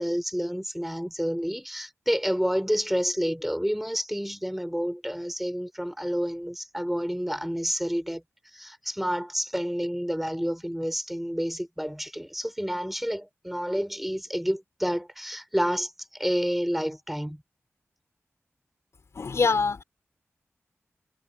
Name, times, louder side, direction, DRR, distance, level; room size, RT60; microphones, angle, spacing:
voice 1, 0.0-17.4, equal, 5° right, 6.3 m, -29 dB
voice 2, 19.2-19.8, left 4 dB, 70° left, 4.9 m, -24 dB
cardioid pair, 60°, 5 cm